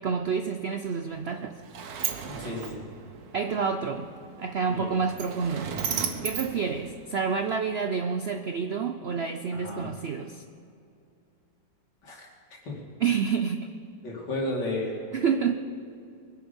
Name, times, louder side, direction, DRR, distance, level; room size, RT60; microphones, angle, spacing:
voice 1, 0.0-1.6 3.3-4.1 4.4-5.7 6.2-10.4 13.0-13.7 15.1-15.5, right 6 dB, 80° right, 7 dB, 0.5 m, -28 dB
Sliding door, 1.1-7.5, right 6 dB, 60° right, 1.5 m, -36 dB
voice 2, 2.2-2.8 4.7-4.9 9.5-9.9 12.0-12.3 12.6-12.8 14.0-15.1, left 1 dB, 70° left, -2 dB, 3.2 m, -33 dB
22.5 x 10.5 x 5.3 m, 2.5 s
omnidirectional pair, 1.9 m